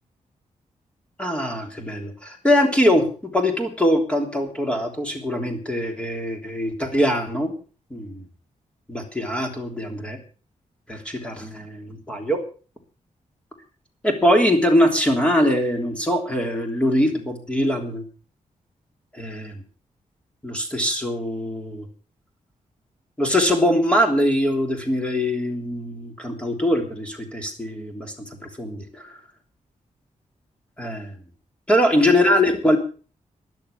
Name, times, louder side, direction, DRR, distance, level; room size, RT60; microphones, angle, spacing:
voice 1, 1.2-3.0 3.3-7.5 7.9-8.2 8.9-10.2 10.9-12.4 14.0-18.1 19.1-19.6 20.4-21.9 23.2-28.1 28.6-29.2 30.8-31.1 31.7-32.8, equal, 10° left, 4 dB, 3.2 m, -22 dB
13.0 x 11.5 x 7.0 m, 0.38 s
wide cardioid pair, 175°, 13 cm